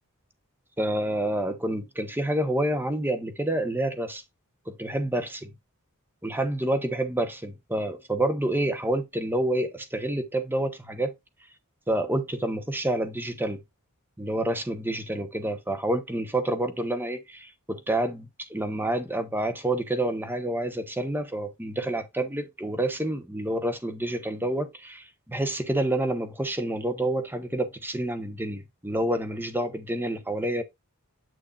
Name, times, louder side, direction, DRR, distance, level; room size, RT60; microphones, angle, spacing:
voice 1, 0.8-4.2 4.7-5.5 6.2-11.1 11.9-13.6 14.2-30.6, right 1 dB, 10° right, 1.0 m, -28 dB
8.5 x 6.3 x 2.4 m
head